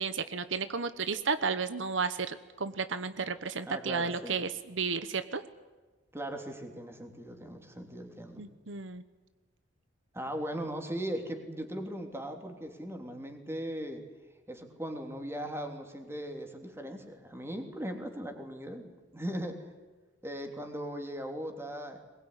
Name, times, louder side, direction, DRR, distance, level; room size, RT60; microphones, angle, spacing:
voice 1, 0.0-5.4 8.4-9.0, right 5 dB, 80° right, 12 dB, 1.1 m, -33 dB
voice 2, 3.6-4.4 6.1-8.4 10.1-14.0 14.5-19.6 20.2-22.0, equal, 15° right, 4 dB, 3.3 m, -39 dB
22.5 x 21.0 x 10.0 m, 1.3 s
head